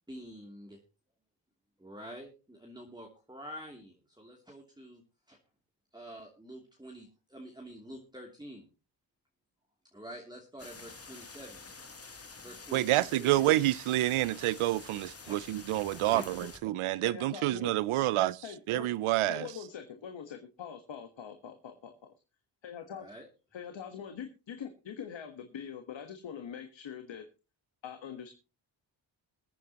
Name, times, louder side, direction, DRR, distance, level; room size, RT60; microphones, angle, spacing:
voice 1, 0.1-0.8 1.8-5.0 5.3-5.4 5.9-8.7 9.9-11.6 12.4-13.4 15.2-15.4 15.9-16.2 22.9-23.3, equal, 10° right, 2.9 m, -47 dB
sound 1, 10.6-16.6, left 4 dB, 30° left, 1.9 m, -49 dB
voice 2, 12.7-16.3 16.6-18.4 18.7-19.5, right 16 dB, 85° right, 0.6 m, -28 dB
voice 3, 17.0-17.7 18.4-18.9 19.3-22.1 22.6-23.1 23.5-27.2 27.8-28.3, left 8 dB, 65° left, 1.5 m, -43 dB
22.5 x 9.3 x 3.0 m
cardioid pair, 60°, 49 cm